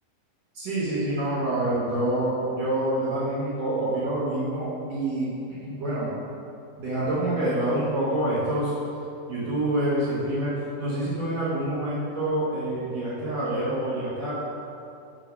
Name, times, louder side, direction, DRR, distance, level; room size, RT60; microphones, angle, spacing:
voice 1, 0.6-5.3 5.6-6.1 6.8-8.7 9.3-14.3, right 1 dB, 65° right, -9 dB, 1.7 m, -27 dB
5.4 x 5.1 x 5.3 m, 2.7 s
omnidirectional pair, 4.5 m